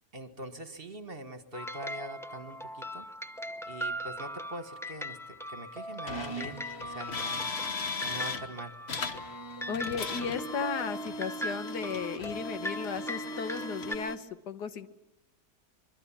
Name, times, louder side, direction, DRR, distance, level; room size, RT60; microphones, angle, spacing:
voice 1, 0.1-3.1 3.7-7.5 8.0-8.8, right 1 dB, 35° right, 9 dB, 1.8 m, -43 dB
sound 1, 1.5-13.9, equal, 5° left, 0.4 m, -40 dB
sound 2, 6.1-8.4 8.9-14.2, left 2 dB, 45° left, 1.4 m, -37 dB
voice 2, 9.7-14.9, left 6 dB, 85° left, 11 dB, 1.8 m, -35 dB
25.5 x 22.5 x 7.3 m, 0.95 s
omnidirectional pair, 1.7 m